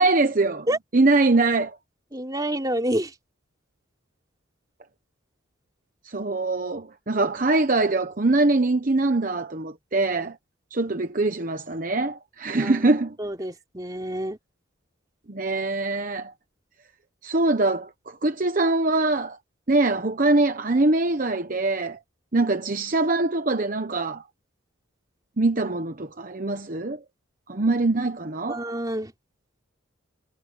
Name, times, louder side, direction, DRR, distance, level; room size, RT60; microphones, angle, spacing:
voice 1, 0.0-0.7 0.9-1.8 6.0-10.4 10.7-13.2 15.3-16.3 17.2-19.4 19.7-22.0 22.3-24.2 25.4-27.0 27.5-28.6, right 2 dB, 40° right, 1.0 m, -23 dB
voice 2, 2.1-3.1 12.5-12.7 13.2-14.4 28.5-29.1, right 1 dB, 20° right, 3.5 m, -28 dB
head